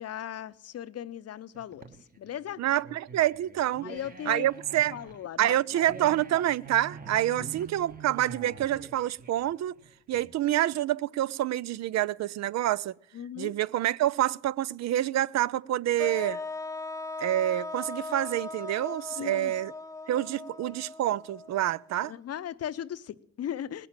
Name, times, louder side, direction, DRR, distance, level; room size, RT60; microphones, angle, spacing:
voice 1, 0.0-1.9 2.2-2.6 3.8-4.5 4.9-5.8 7.3-7.5 13.1-13.5 19.1-19.5 22.0-23.9, left 10 dB, 55° left, 0.7 m, -38 dB
sound 1, 1.5-10.6, right 5 dB, 30° right, 1.2 m, -46 dB
voice 2, 2.6-3.8 4.3-5.0 5.4-9.8 10.1-12.9 13.4-16.4 17.2-19.7 20.1-22.1, right 13 dB, 60° right, 0.5 m, -27 dB
sound 2, 16.0-22.0, left 3 dB, 10° left, 0.5 m, -39 dB
19.5 x 6.8 x 8.8 m
cardioid pair, 90°, 30 cm